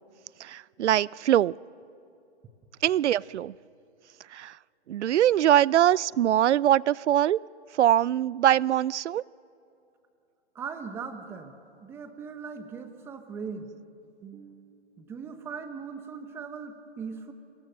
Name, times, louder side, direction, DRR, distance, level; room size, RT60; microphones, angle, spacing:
voice 1, 0.4-1.5 2.8-3.5 4.3-4.5 4.9-7.4 7.7-9.2, right 11 dB, 85° right, 24 dB, 0.5 m, -22 dB
voice 2, 10.5-11.5 11.8-13.7 14.2-17.3, right 5 dB, 5° right, 9 dB, 0.9 m, -39 dB
27.0 x 25.0 x 6.7 m, 2.7 s
hypercardioid pair, 160°, 34 cm